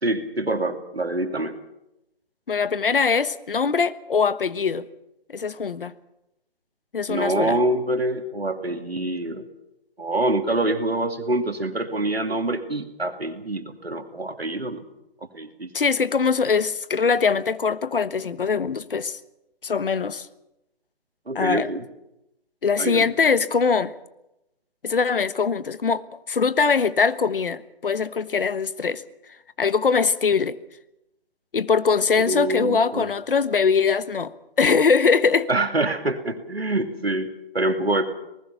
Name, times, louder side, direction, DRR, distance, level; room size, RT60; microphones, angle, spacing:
voice 1, 0.0-1.6 7.1-9.5 10.0-14.8 15.3-15.7 21.3-21.8 22.8-23.1 32.3-33.1 35.5-38.1, right 2 dB, 90° right, 7 dB, 2.7 m, -25 dB
voice 2, 2.5-4.8 5.3-5.9 6.9-7.6 15.7-19.2 19.6-20.3 21.3-21.7 22.6-23.9 24.8-26.0 26.3-29.0 29.6-30.6 31.5-35.5, left 5 dB, 65° left, 16 dB, 1.2 m, -22 dB
26.5 x 19.5 x 5.9 m, 0.89 s
figure-of-eight pair, 145°, 30 cm